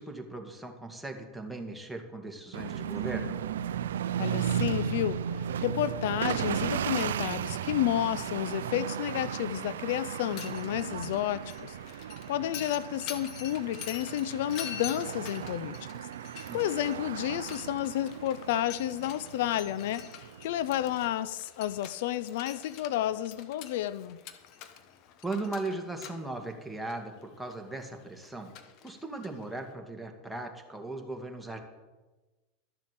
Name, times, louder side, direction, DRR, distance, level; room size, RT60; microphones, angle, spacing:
voice 1, 0.0-3.4 16.5-16.6 25.2-28.5 28.8-31.6, right 2 dB, 5° right, 2.1 m, -38 dB
sound 1, 2.5-21.1, right 9 dB, 85° right, 0.5 m, -35 dB
voice 2, 4.2-16.1 16.5-24.2, left 12 dB, 70° left, 0.5 m, -31 dB
Mechanisms, 10.1-29.7, left 9 dB, 50° left, 1.3 m, -47 dB
12.5 x 7.2 x 7.7 m
hypercardioid pair, 110°, 0 cm